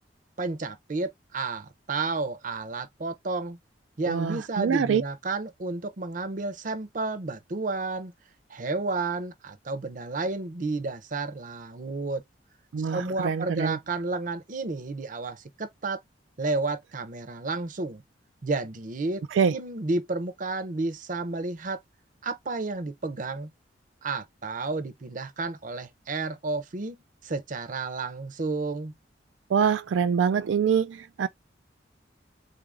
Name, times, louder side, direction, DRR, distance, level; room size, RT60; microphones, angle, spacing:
voice 1, 0.4-3.6 4.0-8.1 8.5-12.2 12.9-16.0 16.4-18.0 18.4-19.2 19.5-21.8 22.2-23.5 24.0-27.0 27.2-28.9, right 3 dB, 45° right, 0.6 m, -31 dB
voice 2, 4.1-5.0 12.7-13.8 19.3-19.6 29.5-31.3, right 6 dB, 85° right, 0.3 m, -25 dB
3.9 x 2.5 x 3.4 m
head